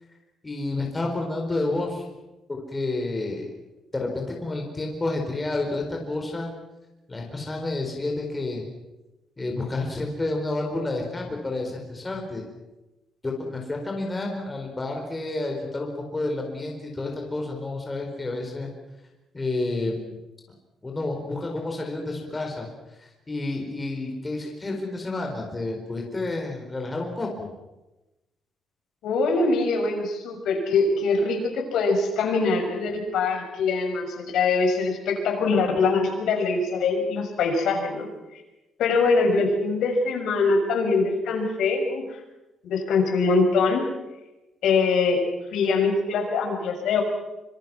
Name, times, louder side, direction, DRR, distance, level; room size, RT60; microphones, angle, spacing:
voice 1, 0.4-2.0 2.5-3.5 3.9-6.5 7.1-8.6 9.4-12.4 13.2-18.7 19.3-20.2 20.8-22.7 23.0-27.5, left 2 dB, 15° left, 1 dB, 4.3 m, -30 dB
voice 2, 29.0-38.1 38.8-42.0 42.6-43.8 44.6-45.2 45.5-47.0, left 4 dB, 75° left, 2 dB, 6.5 m, -23 dB
26.0 x 25.5 x 6.2 m, 1.0 s
cardioid pair, 160°, 0 cm